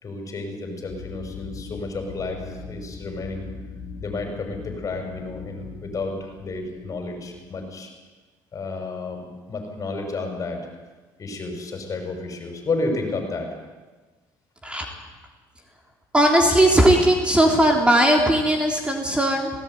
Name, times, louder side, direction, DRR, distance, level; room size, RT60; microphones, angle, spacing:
voice 1, 0.0-3.5 4.0-7.9 8.5-10.6 11.2-13.5, left 3 dB, 40° left, 4 dB, 6.0 m, -31 dB
sound 1, 0.9-7.6, left 4 dB, 70° left, 3.1 m, -40 dB
voice 2, 16.1-19.5, right 1 dB, 10° right, 2 dB, 3.4 m, -18 dB
18.5 x 17.5 x 9.5 m, 1.3 s
cardioid pair, 95°, 9 cm